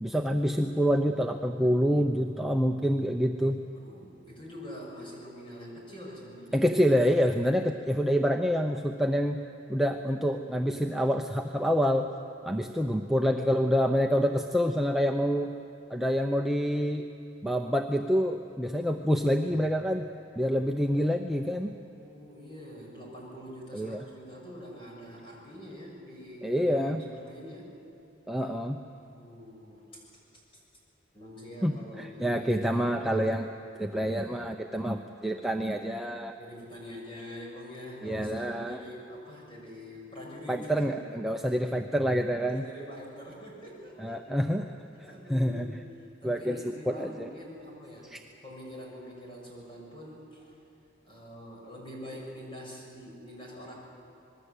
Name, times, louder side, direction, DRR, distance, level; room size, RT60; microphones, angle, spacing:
voice 1, 0.0-3.6 6.5-9.4 9.7-12.1 12.4-15.6 15.9-17.1 17.4-20.1 20.4-21.7 23.7-24.0 26.4-27.0 28.3-28.8 31.6-33.5 33.8-36.3 38.0-38.8 40.5-42.6 44.0-44.7 45.3-45.8 46.2-47.3 48.0-48.2, equal, ahead, 2 dB, 0.7 m, -27 dB
voice 2, 3.7-6.7 12.5-12.9 21.6-27.7 29.0-30.0 31.1-32.7 36.4-41.0 41.4-41.6 42.4-44.4 44.9-45.8 46.2-48.1 48.4-50.5 51.0-53.7, equal, 25° left, -3 dB, 6.8 m, -45 dB
26.5 x 20.5 x 8.3 m, 2.8 s
head